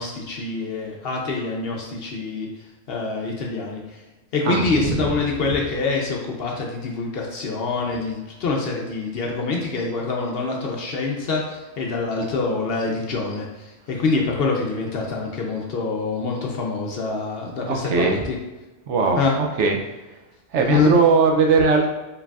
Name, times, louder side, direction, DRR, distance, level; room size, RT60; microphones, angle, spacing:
voice 1, 0.0-2.5 2.9-4.0 4.3-18.3 19.2-19.3 20.7-20.9, left 3 dB, 60° left, -1 dB, 0.7 m, -25 dB
voice 2, 4.5-5.1 17.7-18.2 18.9-19.8 20.5-21.9, right 4 dB, 70° right, 2 dB, 0.8 m, -19 dB
4.7 x 3.2 x 2.3 m, 1.1 s
omnidirectional pair, 1.3 m